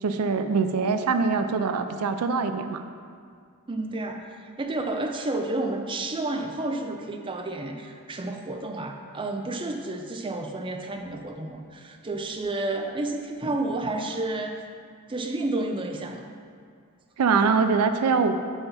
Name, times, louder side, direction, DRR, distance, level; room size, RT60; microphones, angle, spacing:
voice 1, 0.0-2.8 17.2-18.4, right 5 dB, 85° right, 8 dB, 0.4 m, -23 dB
voice 2, 3.7-14.6 15.1-16.2, right 2 dB, 20° right, 4 dB, 0.4 m, -31 dB
5.6 x 5.6 x 5.6 m, 2.1 s
head